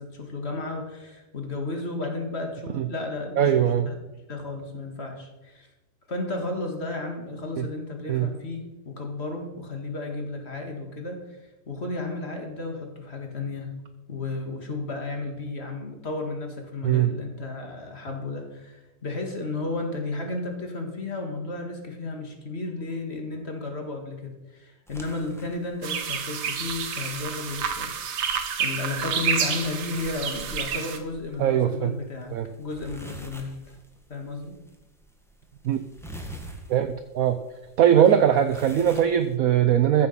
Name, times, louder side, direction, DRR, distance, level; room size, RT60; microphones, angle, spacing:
voice 1, 0.0-3.9 4.3-5.7 6.1-13.7 14.1-28.3 28.6-33.8 34.1-34.6 37.9-38.1, left 3 dB, 35° left, 3 dB, 2.1 m, -33 dB
voice 2, 3.4-3.9 7.6-7.7 8.1-8.3 16.8-17.1 31.4-31.9 32.3-32.5 35.6-35.8 36.7-37.4 37.8-40.1, right 10 dB, 65° right, 10 dB, 0.9 m, -20 dB
sound 1, 24.9-39.3, right 1 dB, ahead, 1.2 m, -47 dB
sound 2, 25.8-31.0, right 7 dB, 85° right, 1.9 m, -29 dB
14.0 x 7.2 x 5.6 m, 1.0 s
omnidirectional pair, 2.0 m